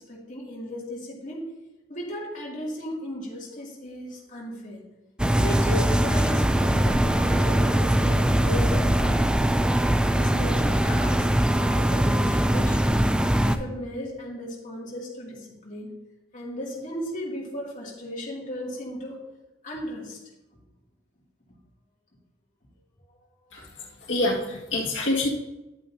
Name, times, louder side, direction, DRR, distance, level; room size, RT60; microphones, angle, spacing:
voice 1, 0.1-1.4 1.9-4.8 5.4-9.5 10.1-12.9 13.4-15.9 16.3-19.2 19.6-20.2 23.5-23.7, equal, 45° left, -4 dB, 2.4 m, -36 dB
sound 1, 5.2-13.6, right 1 dB, 5° right, 0.3 m, -22 dB
voice 2, 24.1-25.3, left 2 dB, 80° left, -3 dB, 2.0 m, -26 dB
10.5 x 8.5 x 2.8 m, 1.0 s
head